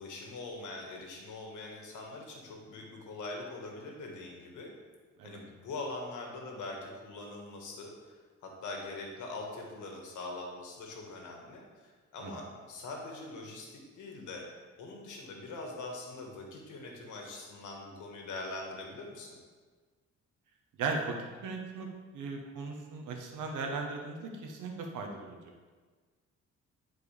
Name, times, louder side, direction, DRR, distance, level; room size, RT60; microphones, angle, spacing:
voice 1, 0.0-4.7 5.2-14.5 14.8-19.4, left 2 dB, 80° left, 1 dB, 1.7 m, -43 dB
voice 2, 20.8-21.1 21.4-21.9 22.1-25.5, right 4 dB, 80° right, 2 dB, 1.2 m, -37 dB
11.0 x 4.5 x 3.4 m, 1.4 s
cardioid pair, 90°, 30 cm